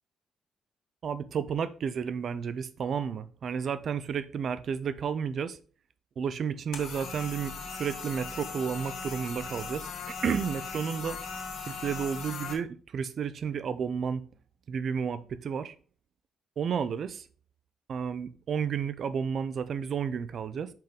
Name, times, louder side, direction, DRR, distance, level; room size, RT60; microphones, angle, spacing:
voice 1, 1.0-5.6 6.2-11.2 11.7-14.2 14.7-15.7 16.6-17.3 17.9-20.7, right 7 dB, 55° right, 0.6 m, -32 dB
sound 1, 6.7-12.5, left 5 dB, 75° left, 1.3 m, -39 dB
5.7 x 5.1 x 3.7 m
cardioid pair, 90°, 0 cm